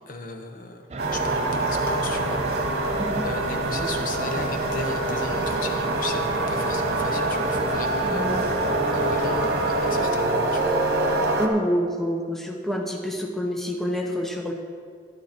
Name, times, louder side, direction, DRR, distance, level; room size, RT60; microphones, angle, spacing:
voice 1, 0.1-2.4 3.2-6.2 6.5-8.3 8.9-10.8, left 2 dB, 50° left, 4 dB, 1.1 m, -35 dB
sound 1, 0.9-10.1, right 3 dB, 40° right, 0.5 m, -34 dB
sound 2, 1.0-11.5, right 2 dB, 60° right, 1.3 m, -25 dB
voice 2, 8.0-8.4 11.4-14.5, equal, ahead, 1 dB, 0.9 m, -27 dB
12.0 x 11.0 x 4.4 m, 2.1 s
head